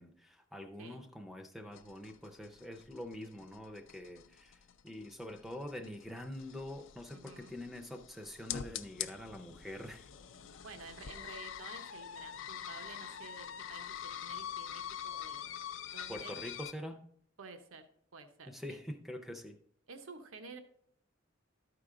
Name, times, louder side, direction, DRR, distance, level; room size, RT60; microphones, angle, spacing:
voice 1, 0.0-4.6 4.8-10.1 16.1-17.1 18.5-19.6, left 1 dB, ahead, 0.5 m, -45 dB
sound 1, 1.7-16.7, left 9 dB, 65° left, 0.4 m, -45 dB
voice 2, 7.1-7.6 10.6-15.5 15.9-16.4 17.4-17.9 18.1-18.8 19.9-20.6, right 4 dB, 85° right, 0.8 m, -51 dB
12.5 x 4.8 x 3.7 m
head